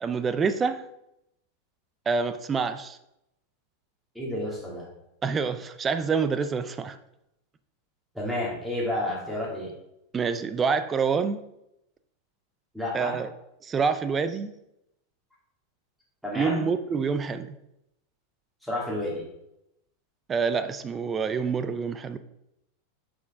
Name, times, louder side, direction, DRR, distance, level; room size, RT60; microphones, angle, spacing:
voice 1, 0.0-0.8 2.1-3.0 5.2-7.0 10.1-11.4 12.9-13.3 13.6-14.5 16.3-17.6 20.3-22.2, right 5 dB, 20° right, 11 dB, 0.4 m, -27 dB
voice 2, 4.1-4.9 8.1-9.7 12.7-13.2 16.2-16.7 18.6-19.2, left 1 dB, ahead, -5 dB, 2.3 m, -30 dB
6.1 x 4.3 x 3.6 m, 0.83 s
supercardioid pair, 135°, 0 cm